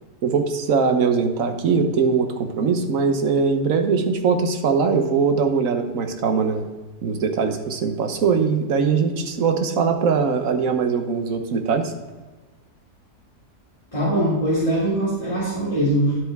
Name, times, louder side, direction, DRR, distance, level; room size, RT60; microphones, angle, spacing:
voice 1, 0.2-6.7 7.0-11.9, right 5 dB, 55° right, 7 dB, 1.3 m, -21 dB
voice 2, 13.9-16.2, right 1 dB, 20° left, -10 dB, 2.7 m, -21 dB
10.5 x 8.0 x 3.6 m, 1.2 s
omnidirectional pair, 1.8 m